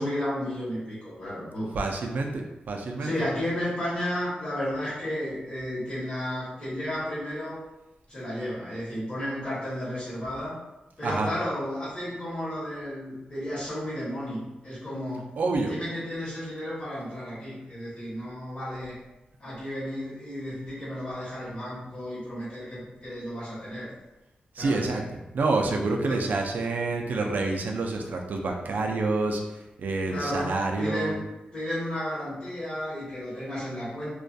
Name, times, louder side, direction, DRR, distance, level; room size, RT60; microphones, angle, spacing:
voice 1, 0.0-1.7 3.0-7.6 8.1-10.6 11.0-15.3 15.6-19.0 19.4-23.9 24.5-24.9 26.0-26.3 30.1-31.2 31.5-34.1, equal, 35° left, -12 dB, 1.0 m, -33 dB
voice 2, 1.7-3.3 11.0-11.3 15.4-15.7 24.5-29.4 29.8-31.1, right 3 dB, 75° right, 2 dB, 0.3 m, -28 dB
2.3 x 2.2 x 2.6 m, 0.97 s
wide cardioid pair, 155°, 3 cm